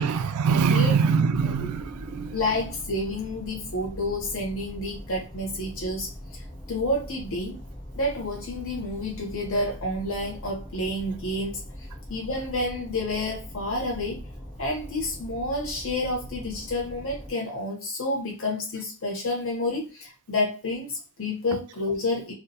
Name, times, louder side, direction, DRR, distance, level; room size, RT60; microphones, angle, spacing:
voice 1, 0.0-2.4, right 6 dB, 80° right, 0.3 m, -23 dB
voice 2, 0.7-1.7 2.3-6.4 6.7-7.6 7.9-11.6 12.1-14.2 14.6-22.3, left 1 dB, 65° left, 1.0 m, -29 dB
sound 1, 1.3-17.3, equal, 20° left, 0.7 m, -41 dB
2.3 x 2.3 x 2.7 m
head